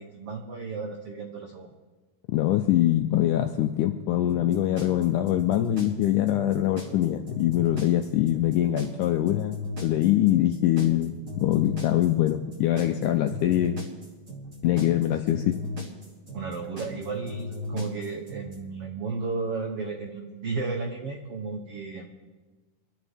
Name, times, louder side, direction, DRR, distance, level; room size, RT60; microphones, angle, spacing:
voice 1, 0.0-1.7 16.3-22.0, right 4 dB, 80° right, 3 dB, 1.3 m, -33 dB
voice 2, 2.3-9.6 9.8-13.8 14.6-15.6, left 13 dB, 85° left, 6 dB, 1.8 m, -23 dB
sound 1, 4.3-18.6, left 2 dB, 30° right, 3.1 m, -37 dB
24.5 x 13.5 x 3.6 m, 1.3 s
omnidirectional pair, 4.3 m